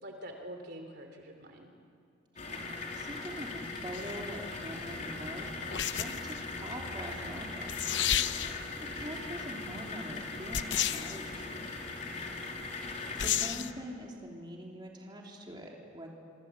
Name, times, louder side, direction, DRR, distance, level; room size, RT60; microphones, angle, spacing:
voice 1, 0.0-1.7 8.7-8.9 13.2-13.4, equal, 50° right, 4 dB, 3.2 m, -46 dB
sound 1, 2.4-13.5, left 3 dB, 35° left, 3.7 m, -40 dB
voice 2, 2.9-7.7 8.9-11.7 13.2-16.1, equal, 20° right, -1 dB, 3.3 m, -44 dB
sound 2, 3.9-4.2 5.7-6.4 7.4-7.5 7.7-8.7 10.5-11.2 13.2-13.7, left 10 dB, 60° left, 0.8 m, -31 dB
26.0 x 25.5 x 8.3 m, 2.2 s
head